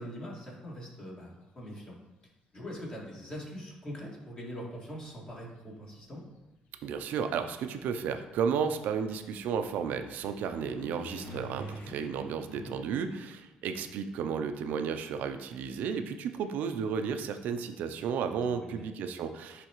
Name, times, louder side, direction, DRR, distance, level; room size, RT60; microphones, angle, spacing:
voice 1, 0.0-2.0 2.5-6.2 11.8-11.9 12.5-12.7 18.5-18.9, equal, 35° left, -4 dB, 2.1 m, -42 dB
sound 1, 2.6-3.1 4.1-4.2 4.8-14.7 15.0-17.6, equal, 65° left, 0.9 m, -51 dB
voice 2, 6.8-19.7, right 6 dB, 75° right, 7 dB, 0.5 m, -33 dB
10.0 x 3.4 x 3.1 m, 1.1 s
supercardioid pair, 80°, 3 cm